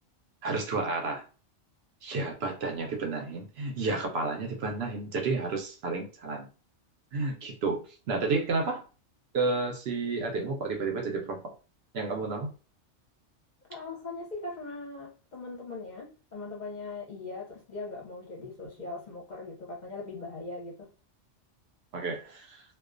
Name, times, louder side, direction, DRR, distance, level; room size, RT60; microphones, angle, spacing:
voice 1, 0.4-1.2 2.0-6.5 7.1-8.8 9.3-11.5 11.9-12.5 21.9-22.6, right 3 dB, 70° right, 0.8 m, -31 dB
voice 2, 13.7-20.9, left 3 dB, 45° left, 0.6 m, -40 dB
2.3 x 2.2 x 2.4 m
omnidirectional pair, 1.2 m